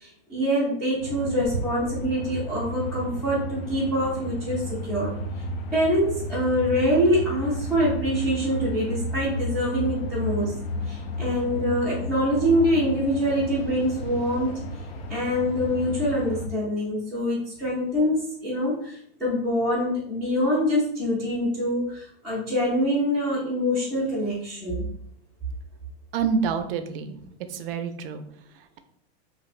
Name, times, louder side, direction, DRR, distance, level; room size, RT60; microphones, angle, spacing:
voice 1, 0.0-5.1 5.7-10.5 10.9-14.5 15.1-24.9, equal, ahead, -12 dB, 0.4 m, -25 dB
sound 1, 1.0-16.5, left 1 dB, 70° left, 0.6 m, -33 dB
voice 2, 26.1-27.2 27.5-28.2, right 6 dB, 60° right, 9 dB, 0.4 m, -27 dB
3.1 x 2.6 x 2.4 m, 0.68 s
supercardioid pair, 165°, 32 cm